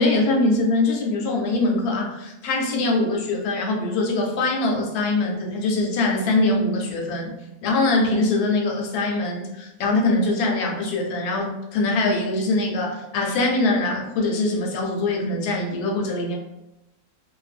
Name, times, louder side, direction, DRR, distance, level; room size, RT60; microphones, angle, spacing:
voice 1, 0.0-7.3 7.6-16.3, left 2 dB, 80° left, 0 dB, 1.1 m, -23 dB
2.5 x 2.2 x 2.4 m, 0.94 s
omnidirectional pair, 1.6 m